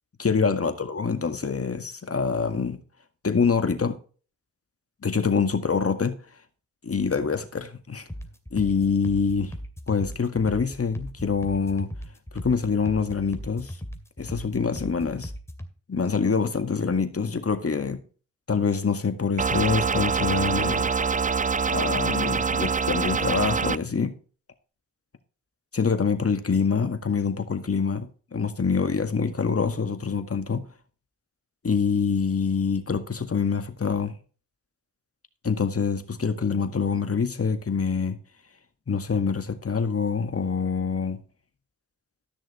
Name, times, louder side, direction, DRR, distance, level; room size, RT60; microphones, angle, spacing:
voice 1, 0.2-2.8 3.2-4.0 5.0-6.2 6.8-8.0 8.5-9.5 9.9-11.9 12.3-13.8 14.2-15.3 15.9-18.0 18.5-20.9 21.7-24.1 25.7-30.7 31.6-34.1 35.4-38.2 38.9-41.2, left 5 dB, 40° left, 1.9 m, -25 dB
sound 1, 8.1-15.7, equal, 5° left, 2.5 m, -39 dB
sound 2, 19.4-23.8, right 5 dB, 20° right, 0.5 m, -25 dB
13.5 x 6.3 x 4.3 m
supercardioid pair, 40°, 36 cm